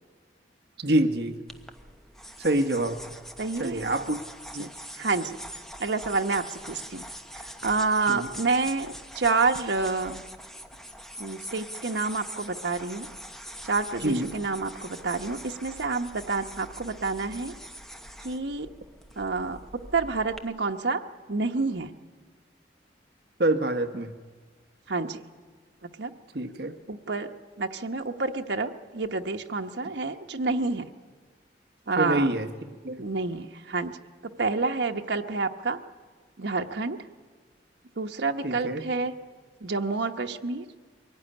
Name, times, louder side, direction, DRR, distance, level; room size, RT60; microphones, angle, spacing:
voice 1, 0.8-1.4 2.4-3.0 3.6-4.2 4.5-4.7 8.1-8.3 14.0-14.3 23.4-24.1 26.3-26.7 32.0-32.5 32.8-33.0 38.4-38.8, right 1 dB, 65° right, 8 dB, 1.2 m, -26 dB
sound 1, 1.5-20.4, equal, ahead, 1.0 m, -43 dB
voice 2, 3.4-3.8 4.6-5.4 5.8-7.0 7.3-10.2 11.2-13.1 13.6-17.5 18.2-18.7 19.2-21.0 21.3-21.9 24.9-25.2 25.8-26.1 26.9-30.9 31.9-32.3 33.0-34.0 34.2-35.8 36.4-37.1 38.0-39.1 39.6-40.7, right 3 dB, 85° right, 4 dB, 1.1 m, -29 dB
23.0 x 17.0 x 9.9 m, 1.4 s
head